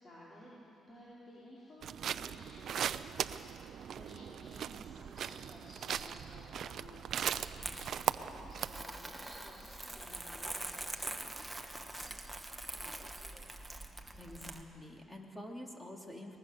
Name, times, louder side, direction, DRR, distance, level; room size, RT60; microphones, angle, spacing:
voice 1, 0.0-11.4, left 1 dB, 30° left, -8 dB, 5.4 m, -55 dB
sound 1, 1.8-8.8, right 9 dB, 65° right, 0.6 m, -39 dB
Crumpling crinkling, 7.6-14.6, right 1 dB, 10° right, 1.5 m, -44 dB
voice 2, 14.2-16.4, left 1 dB, 10° left, 1 dB, 2.7 m, -47 dB
23.0 x 20.0 x 6.8 m, 3.0 s
cardioid pair, 90°, 0 cm